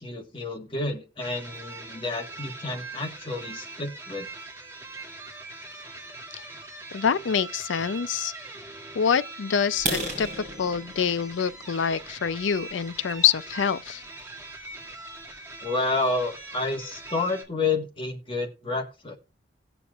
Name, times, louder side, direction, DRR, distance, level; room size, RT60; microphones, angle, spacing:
voice 1, 0.0-4.3 15.6-19.2, left 3 dB, 30° left, 1.4 m, -30 dB
sound 1, 1.2-17.4, right 2 dB, 15° right, 2.1 m, -42 dB
voice 2, 6.9-8.3 9.0-10.3 10.6-14.0, left 7 dB, 85° left, 0.5 m, -25 dB
sound 2, 9.7-13.5 14.0-14.2 14.7-14.8 15.2-15.4 15.7-15.8 16.2-16.3 16.6-17.1, right 1 dB, 40° right, 5.2 m, -35 dB
18.5 x 7.0 x 2.4 m
head